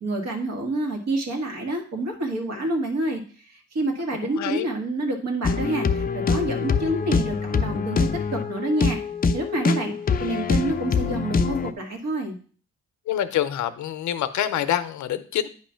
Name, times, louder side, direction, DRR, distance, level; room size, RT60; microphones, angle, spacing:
voice 1, 0.0-9.0 9.3-9.9 10.2-12.4, right 1 dB, 60° right, 2 dB, 1.8 m, -28 dB
voice 2, 4.2-4.7 13.1-15.5, left 11 dB, 70° left, 12 dB, 0.6 m, -26 dB
sound 1, 5.4-11.7, left 5 dB, 30° left, 0.5 m, -24 dB
9.2 x 3.1 x 5.6 m, 0.43 s
cardioid pair, 90°, 30 cm